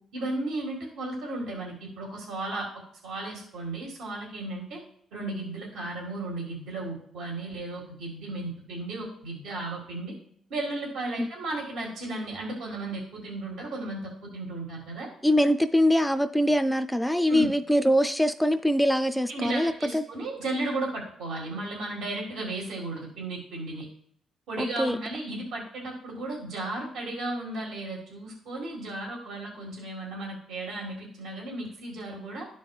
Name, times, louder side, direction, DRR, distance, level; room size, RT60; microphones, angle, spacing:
voice 1, 0.1-2.7 3.0-4.8 5.1-10.2 10.5-15.1 17.3-17.5 19.3-23.9 24.5-32.5, right 2 dB, 80° right, -1 dB, 1.8 m, -34 dB
voice 2, 15.2-20.0 24.6-25.0, equal, 5° left, 9 dB, 0.3 m, -23 dB
12.0 x 5.2 x 2.4 m, 0.64 s
cardioid pair, 90°, 0 cm